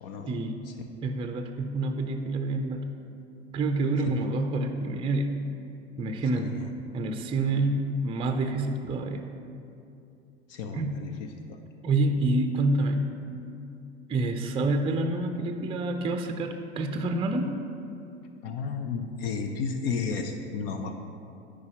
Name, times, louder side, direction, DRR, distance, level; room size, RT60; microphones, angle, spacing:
voice 1, 0.0-0.3 4.0-4.1 6.3-6.6 10.5-11.6 18.4-21.0, left 5 dB, 60° left, 6 dB, 0.6 m, -33 dB
voice 2, 1.0-2.9 3.5-5.4 6.0-6.6 6.9-9.3 10.7-11.0 11.8-13.4 14.1-17.6, right 2 dB, 15° right, 5 dB, 0.5 m, -27 dB
13.5 x 4.9 x 2.9 m, 2.6 s
figure-of-eight pair, 75°, 34 cm